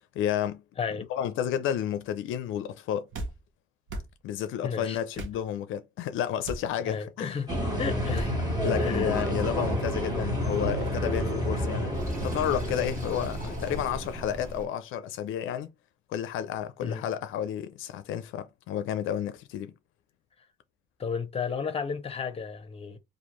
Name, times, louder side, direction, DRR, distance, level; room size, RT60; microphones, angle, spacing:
voice 1, 0.1-0.6 1.1-3.1 4.2-7.4 8.6-15.7 16.1-19.7, left 10 dB, 85° left, 0.4 m, -31 dB
voice 2, 0.8-1.1 4.6-5.0 6.8-7.5 7.8-8.4 8.8-9.2 16.8-17.1 21.0-23.0, left 6 dB, 30° left, 0.7 m, -33 dB
sound 1, 3.1-3.4 3.9-4.1 5.1-5.4 6.4-6.7 8.1-8.3, right 2 dB, 80° right, 0.8 m, -36 dB
sound 2, 7.5-14.6, equal, 20° right, 1.4 m, -30 dB
Sink (filling or washing), 11.9-14.7, right 2 dB, 40° right, 1.3 m, -39 dB
2.5 x 2.5 x 3.0 m
cardioid pair, 90°, 20 cm